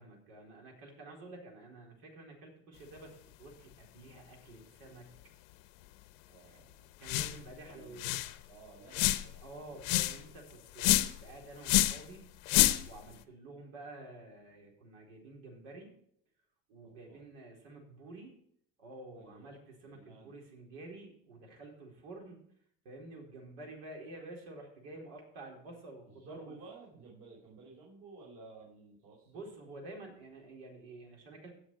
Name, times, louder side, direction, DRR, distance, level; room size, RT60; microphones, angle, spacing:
voice 1, 0.0-3.1 3.4-5.1 6.5-6.7 7.0-8.1 9.4-12.4 12.8-15.9 16.7-18.4 18.8-22.4 22.8-26.6 29.3-31.6, right 2 dB, 90° right, -1 dB, 4.5 m, -50 dB
voice 2, 6.3-6.8 7.7-8.2 8.5-9.4 13.0-13.2 16.8-17.2 19.2-19.5 19.9-20.3 26.2-29.3, right 3 dB, 55° right, -4 dB, 4.5 m, -54 dB
sound 1, 7.0-7.4 7.7-7.8 8.0-8.3 8.9-9.4 9.8-10.2 10.8-11.2 11.6-12.0 12.5-13.0, left 16 dB, 80° left, 0.9 m, -27 dB
17.0 x 6.4 x 4.7 m, 0.67 s
supercardioid pair, 125°, 30 cm